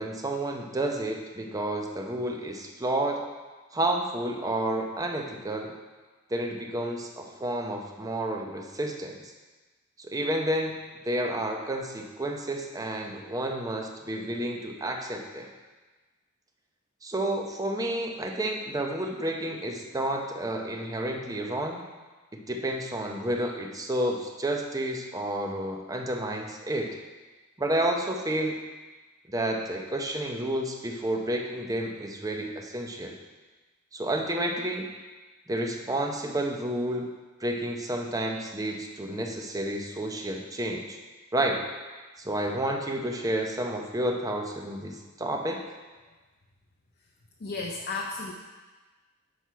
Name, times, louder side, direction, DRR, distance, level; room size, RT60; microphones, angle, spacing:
voice 1, 0.0-3.2 3.7-5.7 6.3-9.2 10.0-10.7 11.1-15.5 17.0-21.8 22.3-27.0 27.6-28.6 29.3-33.2 33.9-34.9 35.5-37.1 37.4-41.0 41.3-41.6 42.2-45.6, right 1 dB, 15° right, 2 dB, 0.6 m, -30 dB
voice 2, 47.4-48.3, left 3 dB, 50° left, -1 dB, 0.6 m, -33 dB
6.4 x 5.9 x 4.5 m, 1.3 s
head